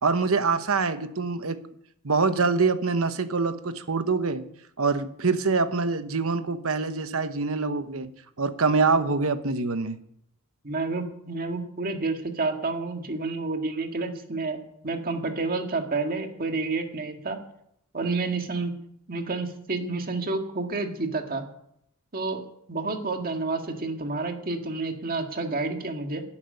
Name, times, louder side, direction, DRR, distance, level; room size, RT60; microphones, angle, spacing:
voice 1, 0.0-1.6 2.0-4.5 4.8-8.1 8.4-10.0, right 4 dB, 65° right, 11 dB, 1.1 m, -25 dB
voice 2, 10.6-17.4 17.9-18.7 19.1-21.4 22.1-22.4 22.7-26.2, right 3 dB, 40° right, 4 dB, 1.8 m, -29 dB
12.0 x 8.5 x 9.6 m, 0.74 s
head